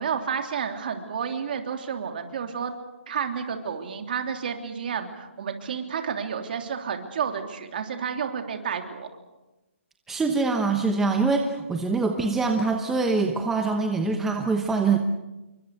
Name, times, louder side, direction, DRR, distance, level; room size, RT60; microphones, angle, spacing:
voice 1, 0.0-2.7 3.1-9.1, right 7 dB, 40° right, 5 dB, 3.3 m, -30 dB
voice 2, 10.1-15.0, right 4 dB, 5° right, 3 dB, 1.0 m, -24 dB
29.0 x 24.0 x 6.6 m, 1.1 s
hypercardioid pair, 170°, 7 cm